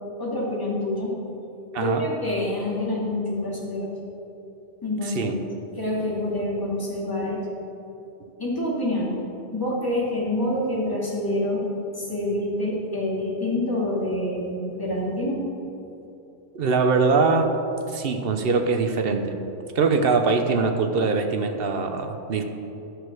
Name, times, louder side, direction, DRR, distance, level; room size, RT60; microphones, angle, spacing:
voice 1, 0.2-1.1 1.8-3.9 4.8-5.4 5.8-7.5 8.4-9.1 9.5-11.7 12.0-15.4 15.6-15.7, left 1 dB, 15° left, -5 dB, 2.3 m, -27 dB
voice 2, 5.0-5.4 16.5-17.6 17.9-19.3 19.7-22.4, right 4 dB, 55° right, 6 dB, 1.0 m, -22 dB
11.5 x 6.4 x 6.3 m, 2.9 s
omnidirectional pair, 1.2 m